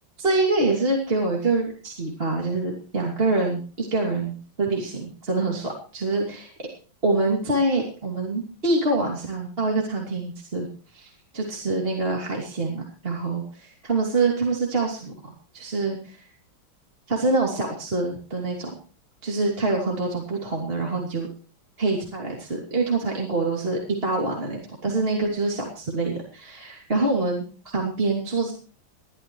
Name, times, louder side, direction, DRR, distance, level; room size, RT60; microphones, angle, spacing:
voice 1, 0.2-6.7 7.0-10.7 10.9-13.4 13.9-16.2 17.1-18.7 19.2-21.3 21.8-27.4 27.7-28.5, right 3 dB, 25° right, -2 dB, 2.9 m, -25 dB
21.5 x 13.0 x 3.1 m, 0.37 s
omnidirectional pair, 2.2 m